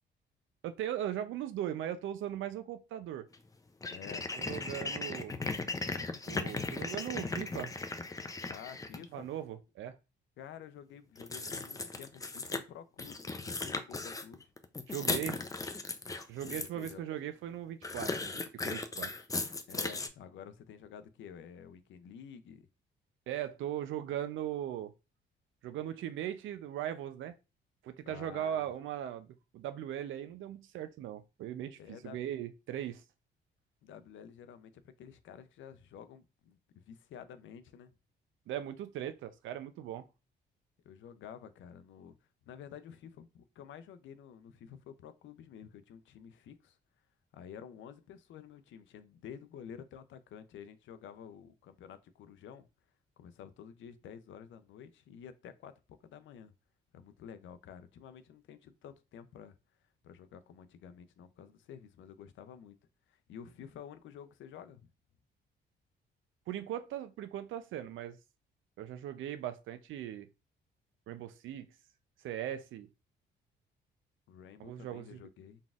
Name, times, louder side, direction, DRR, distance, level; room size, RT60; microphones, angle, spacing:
voice 1, 0.6-3.3 4.4-5.3 6.3-7.7 9.1-10.0 14.9-15.4 16.3-19.1 23.3-24.9 25.6-27.3 27.8-29.3 29.5-33.0 38.5-40.1 66.5-68.2 68.8-70.3 71.1-71.7 72.2-72.9 74.6-75.2, right 11 dB, 75° right, 0.5 m, -39 dB
sound 1, 3.3-3.4 3.8-9.0 11.2-12.6 13.0-16.9 17.8-20.1, left 3 dB, 15° left, 0.5 m, -37 dB
voice 2, 3.9-4.3 4.8-4.9 8.5-9.3 10.4-14.5 16.4-17.0 19.7-22.7 28.0-28.7 31.8-32.2 33.8-37.9 40.8-42.2 42.4-46.8 47.3-52.7 53.2-56.5 56.9-59.6 60.0-62.8 63.1-64.9 74.3-75.6, left 8 dB, 75° left, 0.5 m, -50 dB
4.0 x 3.5 x 2.4 m
cardioid pair, 90°, 20 cm